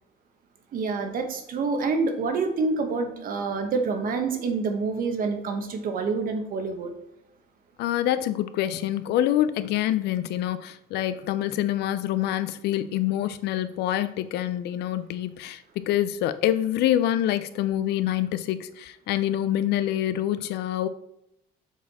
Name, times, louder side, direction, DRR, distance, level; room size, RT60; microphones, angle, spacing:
voice 1, 0.7-6.9, right 4 dB, 55° right, 5 dB, 1.2 m, -27 dB
voice 2, 7.8-20.9, left 12 dB, 80° left, 13 dB, 0.5 m, -26 dB
7.1 x 4.2 x 4.2 m, 0.81 s
cardioid pair, 110°, 17 cm